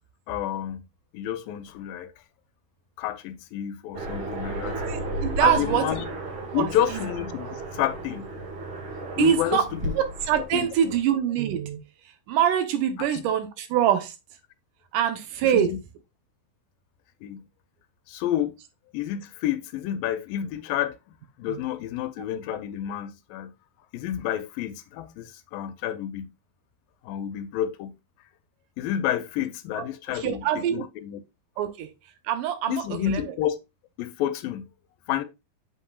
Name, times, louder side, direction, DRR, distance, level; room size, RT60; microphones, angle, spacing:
voice 1, 0.3-0.9 1.1-2.1 3.0-4.8 5.4-6.1 6.5-8.3 9.2-9.9 10.4-10.9 13.0-13.2 15.4-15.8 17.2-17.5 18.1-18.5 18.9-23.5 23.9-26.3 27.0-27.9 28.8-31.2 32.7-33.6 34.0-34.7 35.1-35.2, left 11 dB, 85° left, 2.3 m, -30 dB
Aircraft, 3.9-11.0, right 2 dB, 45° right, 2.2 m, -34 dB
voice 2, 4.7-5.9 6.5-7.0 9.2-9.7 10.0-11.8 12.3-14.2 14.9-15.7 21.5-21.6 29.8-30.9 31.6-31.9 32.2-33.4, right 10 dB, 75° right, 2.2 m, -25 dB
7.8 x 5.6 x 2.3 m
omnidirectional pair, 4.1 m